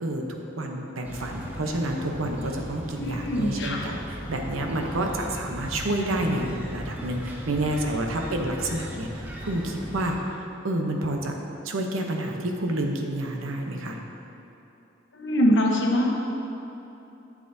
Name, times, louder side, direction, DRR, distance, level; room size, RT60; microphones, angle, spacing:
voice 1, 0.0-10.2 10.6-11.3 11.6-14.0, right 1 dB, 85° right, 2 dB, 0.8 m, -29 dB
sound 1, 1.0-10.1, equal, 10° right, 0.6 m, -37 dB
voice 2, 3.0-3.8 15.1-16.1, equal, 60° left, -1 dB, 1.1 m, -23 dB
11.5 x 7.4 x 2.7 m, 2.9 s
head